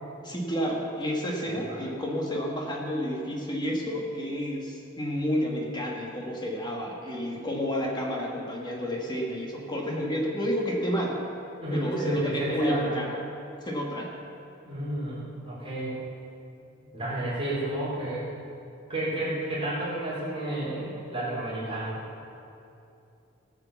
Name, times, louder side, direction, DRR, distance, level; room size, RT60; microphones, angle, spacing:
voice 1, 0.2-11.2 11.7-13.2 13.6-14.1, equal, 20° left, -1 dB, 1.7 m, -30 dB
voice 2, 11.6-13.0 14.6-16.0 16.8-18.2 18.9-22.0, right 1 dB, 30° right, -10 dB, 3.3 m, -31 dB
18.5 x 6.8 x 7.1 m, 2.8 s
head